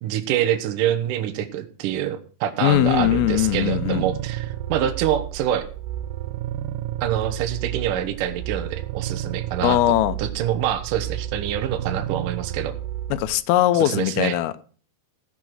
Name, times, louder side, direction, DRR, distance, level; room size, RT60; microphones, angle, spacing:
voice 1, 0.0-5.7 7.0-9.8 10.2-12.7 13.7-14.4, right 10 dB, 70° right, 2.3 m, -25 dB
voice 2, 2.6-4.1 9.6-10.2 13.1-14.6, left 14 dB, 80° left, 2.5 m, -20 dB
sound 1, 2.7-13.4, right 11 dB, 85° right, 2.8 m, -31 dB
15.0 x 6.1 x 6.3 m
omnidirectional pair, 4.7 m